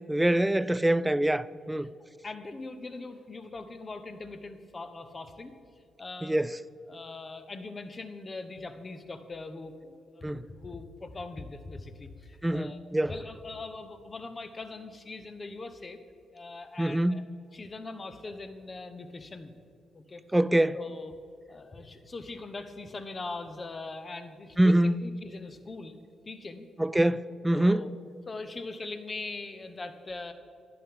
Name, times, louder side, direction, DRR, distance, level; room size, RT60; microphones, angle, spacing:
voice 1, 0.1-1.9 6.2-6.6 10.2-10.5 12.4-13.1 16.8-17.3 20.3-20.8 24.6-25.0 26.8-27.9, right 1 dB, 10° right, 0.3 m, -25 dB
voice 2, 2.2-5.6 6.0-6.5 6.9-12.8 13.1-16.0 16.3-17.2 17.5-19.5 19.9-20.2 20.7-21.2 21.5-26.0 26.3-26.7 27.5-27.9 28.3-30.3, left 3 dB, 35° left, 0.9 m, -41 dB
11.5 x 9.7 x 3.8 m
supercardioid pair, 55°, 0 cm